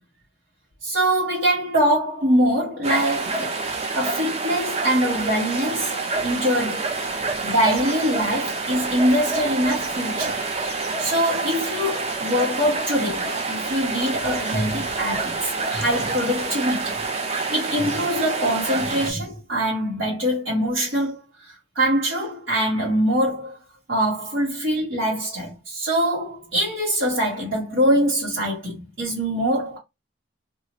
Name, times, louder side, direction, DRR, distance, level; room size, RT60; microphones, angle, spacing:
voice 1, 0.8-3.6 3.9-6.9 7.4-10.4 11.0-17.0 17.3-21.2 21.5-23.6 23.9-29.8, equal, 85° right, 1.3 m, -23 dB
sound 1, 2.8-19.1, right 3 dB, 35° right, 0.5 m, -27 dB
2.7 x 2.4 x 2.9 m
head